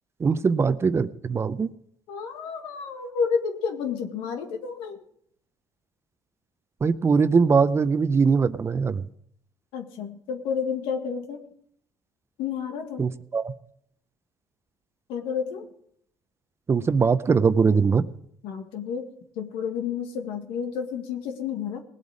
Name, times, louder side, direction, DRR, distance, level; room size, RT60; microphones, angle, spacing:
voice 1, 0.2-1.7 6.8-9.0 13.0-13.5 16.7-18.1, right 5 dB, 30° right, 14 dB, 0.6 m, -21 dB
voice 2, 2.1-5.0 9.7-11.4 12.4-13.0 15.1-15.7 18.4-19.0 19.4-21.8, left 6 dB, 90° left, 5 dB, 1.9 m, -30 dB
19.5 x 8.1 x 5.0 m, 0.68 s
cardioid pair, 105°, 9 cm